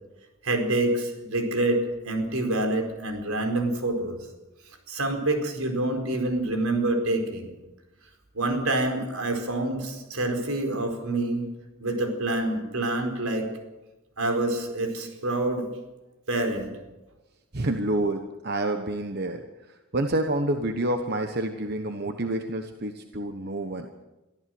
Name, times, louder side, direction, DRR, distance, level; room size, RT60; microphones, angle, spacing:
voice 1, 0.4-4.2 4.9-7.5 8.3-11.4 11.8-13.5 14.2-15.7 16.3-16.7, right 2 dB, 80° right, 4 dB, 4.6 m, -27 dB
voice 2, 17.5-23.9, right 1 dB, 45° right, 6 dB, 1.2 m, -28 dB
23.5 x 14.5 x 7.8 m, 1.0 s
head